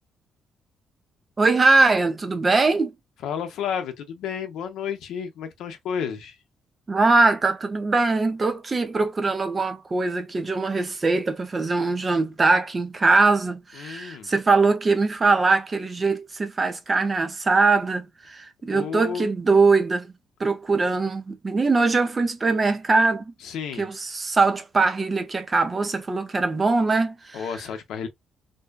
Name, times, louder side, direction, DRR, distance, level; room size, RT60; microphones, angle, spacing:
voice 1, 1.4-2.9 6.9-20.1 20.4-23.3 23.8-27.4, right 3 dB, 30° right, 0.5 m, -22 dB
voice 2, 3.2-6.4 13.8-14.3 18.7-19.3 23.4-23.9 27.3-28.1, left 7 dB, 80° left, 0.6 m, -31 dB
2.6 x 2.2 x 2.2 m
cardioid pair, 90°, 0 cm